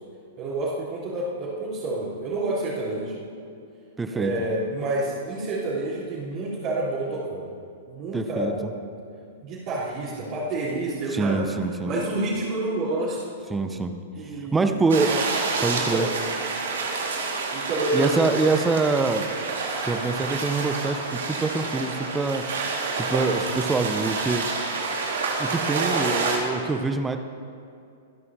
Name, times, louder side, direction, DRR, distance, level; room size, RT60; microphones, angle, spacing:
voice 1, 0.4-3.3 4.1-7.5 7.9-8.7 9.4-13.2 14.1-14.8 15.1-15.2 15.6-16.1 17.5-18.2, right 2 dB, 40° right, -12 dB, 3.9 m, -29 dB
voice 2, 4.0-4.3 8.1-8.5 11.1-11.9 13.5-14.0 14.5-15.1 15.6-16.1 17.9-19.3 19.8-22.4 22.9-24.4 25.4-27.2, right 3 dB, 10° right, 7 dB, 0.9 m, -25 dB
sound 1, 14.9-26.4, right 4 dB, 65° right, 2.2 m, -28 dB
26.5 x 11.0 x 2.9 m, 2.5 s
figure-of-eight pair, 105°, 0 cm